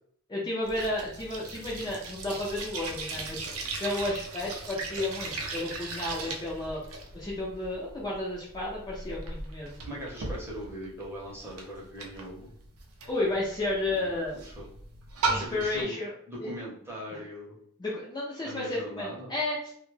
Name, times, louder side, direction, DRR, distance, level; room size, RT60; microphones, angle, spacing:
voice 1, 0.3-3.5 3.8-6.8 7.1-9.8 13.1-14.3 15.3-16.1 16.4-16.5 17.1-17.2 17.8-19.7, left 2 dB, 20° left, -5 dB, 0.4 m, -32 dB
Sink Water Drips Various, 0.6-15.8, right 3 dB, 70° right, 0.5 m, -38 dB
voice 2, 9.8-12.5 13.9-14.7 15.3-16.0 16.3-17.6 18.4-19.3, equal, 10° right, -5 dB, 0.7 m, -40 dB
2.2 x 2.0 x 3.1 m, 0.65 s
head